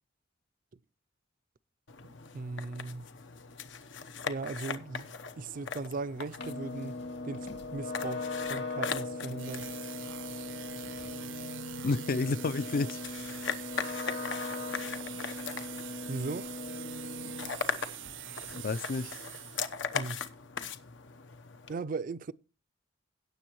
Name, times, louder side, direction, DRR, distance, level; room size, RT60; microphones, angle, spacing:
sound 1, 1.9-21.7, left 6 dB, 85° left, 0.9 m, -40 dB
voice 1, 2.0-3.1 4.3-5.1 5.4-6.9 7.2-9.7 16.1-16.5 19.9-20.2 21.7-22.3, right 3 dB, 45° right, 0.4 m, -38 dB
sound 2, 6.4-17.7 18.0-18.6, left 3 dB, 70° left, 2.9 m, -39 dB
sound 3, 9.4-19.9, right 13 dB, 85° right, 0.7 m, -45 dB
voice 2, 11.8-13.0 18.6-19.1, left 3 dB, 50° left, 0.4 m, -30 dB
17.0 x 6.9 x 3.0 m
head